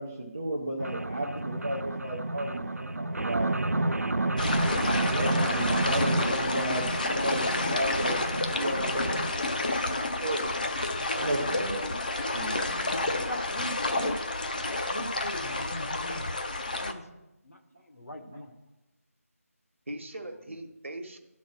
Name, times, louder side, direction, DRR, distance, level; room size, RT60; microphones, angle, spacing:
voice 1, 0.0-4.0 4.5-10.5 11.1-11.9 12.1-13.1, right 1 dB, 10° right, -2 dB, 0.3 m, -34 dB
sound 1, 0.8-9.3 9.9-10.0 10.3-10.4 10.7-10.8 11.1-11.2 11.4-11.5 12.2-12.3 12.6-12.7 13.0-13.1 13.4-13.5 13.7-13.8, right 2 dB, 75° right, 0.4 m, -30 dB
sound 2, 4.4-16.9, left 2 dB, 35° left, 0.5 m, -30 dB
voice 2, 11.1-13.3 19.9-21.2, right 1 dB, 55° right, 5 dB, 1.1 m, -41 dB
voice 3, 13.1-14.2 14.5-15.6 16.0-17.1 17.4-18.5, equal, 70° left, 3 dB, 1.2 m, -40 dB
11.5 x 4.1 x 6.1 m, 0.95 s
figure-of-eight pair, 165°, 8 cm